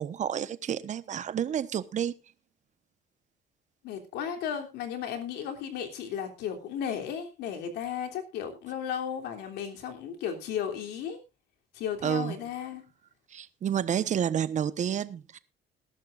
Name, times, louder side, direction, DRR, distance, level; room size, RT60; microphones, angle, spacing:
voice 1, 0.0-2.1 12.0-12.3 13.3-15.4, right 9 dB, 45° right, 1.1 m, -30 dB
voice 2, 3.8-11.2 11.7-12.8, left 8 dB, 80° left, 3.2 m, -34 dB
20.0 x 11.5 x 2.5 m
cardioid pair, 110°, 17 cm